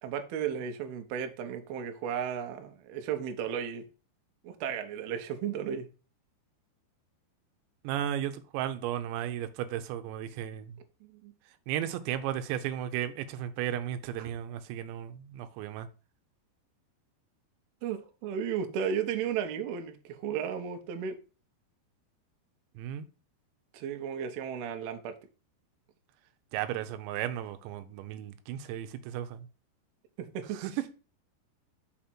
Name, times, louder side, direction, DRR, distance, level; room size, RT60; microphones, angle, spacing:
voice 1, 0.0-3.8 4.4-5.9 11.0-11.3 14.2-14.3 17.8-21.2 23.7-25.1 30.3-30.6, right 8 dB, 75° right, 2.6 m, -34 dB
voice 2, 7.8-10.8 11.7-15.9 22.8-23.1 26.5-29.5 30.5-30.7, right 11 dB, 90° right, 3.0 m, -35 dB
6.1 x 5.0 x 4.3 m
omnidirectional pair, 5.0 m